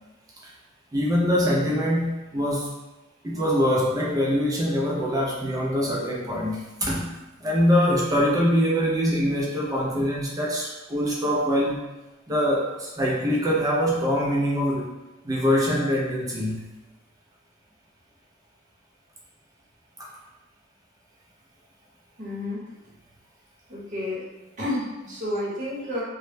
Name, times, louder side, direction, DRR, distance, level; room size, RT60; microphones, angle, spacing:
voice 1, 0.9-2.7 3.2-7.1 7.4-11.8 12.3-15.0 15.2-16.7 20.0-20.1, equal, 20° right, -4 dB, 0.3 m, -24 dB
voice 2, 22.2-22.6 23.7-24.2 24.6-26.0, left 1 dB, 40° right, -7 dB, 0.8 m, -30 dB
2.1 x 2.0 x 3.1 m, 1.0 s
head